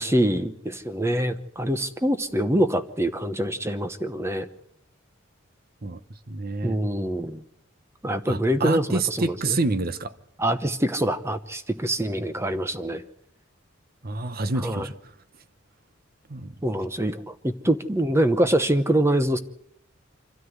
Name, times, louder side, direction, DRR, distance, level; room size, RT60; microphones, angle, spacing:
voice 1, 0.0-4.5 6.6-7.4 8.0-9.6 10.4-13.0 14.6-14.9 16.6-19.4, right 1 dB, 15° right, 0.9 m, -25 dB
voice 2, 6.3-6.8 8.3-10.2 14.0-15.1 16.3-16.5, right 3 dB, 50° right, 1.0 m, -28 dB
26.0 x 13.0 x 8.1 m
head